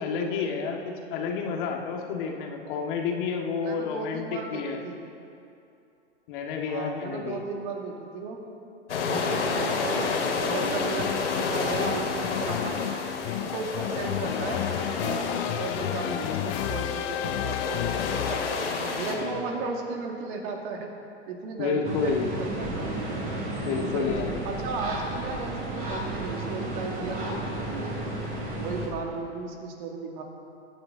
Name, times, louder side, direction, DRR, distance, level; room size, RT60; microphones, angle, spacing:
voice 1, 0.0-4.8 6.3-7.4 19.1-19.6 21.6-22.4 23.6-24.4, left 5 dB, 45° left, 1 dB, 1.9 m, -30 dB
voice 2, 3.5-5.0 6.7-8.4 9.1-12.8 13.4-14.7 15.0-18.4 19.0-20.9 21.2-23.0 23.7-28.0 28.6-30.2, right 4 dB, 45° right, 1 dB, 2.3 m, -35 dB
sound 1, 8.9-19.1, left 4 dB, 75° left, 3.0 m, -30 dB
sound 2, 11.0-18.8, left 14 dB, 30° left, 0.4 m, -32 dB
sound 3, 21.8-28.9, right 1 dB, 25° right, 3.8 m, -33 dB
23.0 x 9.7 x 3.9 m, 2.7 s
hypercardioid pair, 125°, 36 cm